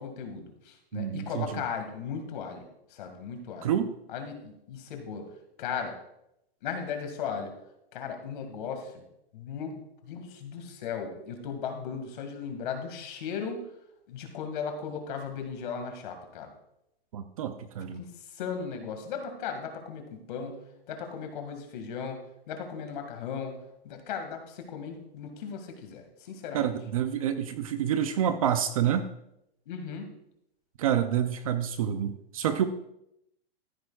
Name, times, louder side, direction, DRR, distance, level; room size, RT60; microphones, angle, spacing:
voice 1, 0.0-3.7 4.1-5.3 5.6-6.0 6.6-7.5 7.9-9.0 9.3-13.6 14.1-16.5 18.0-26.7 29.7-30.1, left 6 dB, 50° left, 5 dB, 2.0 m, -37 dB
voice 2, 0.9-1.6 3.6-3.9 17.1-18.0 26.5-29.1 30.8-32.7, right 9 dB, 35° right, 10 dB, 0.5 m, -28 dB
14.0 x 8.5 x 2.4 m, 0.81 s
hypercardioid pair, 165°, 31 cm